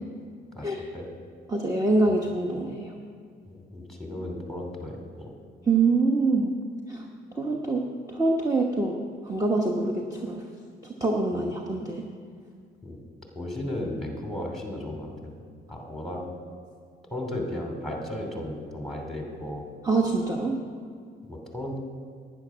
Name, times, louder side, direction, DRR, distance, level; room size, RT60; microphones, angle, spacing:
voice 1, 0.5-1.1 3.5-5.3 11.3-11.5 12.8-13.0 13.3-15.4 15.7-16.2 17.1-19.6 21.3-21.8, left 1 dB, ahead, 1 dB, 2.8 m, -35 dB
voice 2, 1.5-2.9 5.7-6.5 6.9-7.0 7.3-9.0 9.2-10.4 11.0-12.0 19.8-20.6, right 3 dB, 20° right, 1 dB, 1.0 m, -25 dB
10.5 x 9.6 x 6.2 m, 2.1 s
cardioid pair, 90°, 20 cm